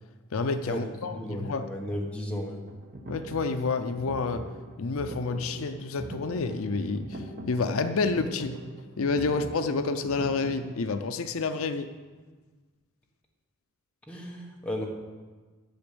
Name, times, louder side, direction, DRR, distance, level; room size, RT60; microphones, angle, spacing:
voice 1, 0.3-1.7 3.1-4.5 4.8-8.5 9.0-11.9, left 4 dB, 70° left, 9 dB, 0.5 m, -29 dB
voice 2, 1.2-2.6 14.1-14.9, left 1 dB, 5° left, -1 dB, 1.4 m, -34 dB
sound 1, 2.7-10.8, right 1 dB, 45° right, 1.2 m, -41 dB
10.0 x 7.1 x 6.8 m, 1.4 s
head